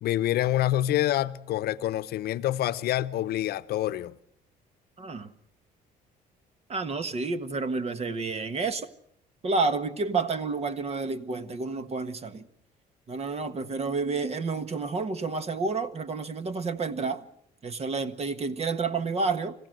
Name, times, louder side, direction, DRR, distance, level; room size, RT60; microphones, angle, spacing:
voice 1, 0.0-4.2, left 13 dB, 70° left, 0.8 m, -27 dB
voice 2, 5.0-5.3 6.7-8.9 9.4-12.5 13.1-17.2 17.6-19.5, right 4 dB, 40° right, 1.5 m, -30 dB
26.0 x 16.0 x 7.8 m
cardioid pair, 110°, 17 cm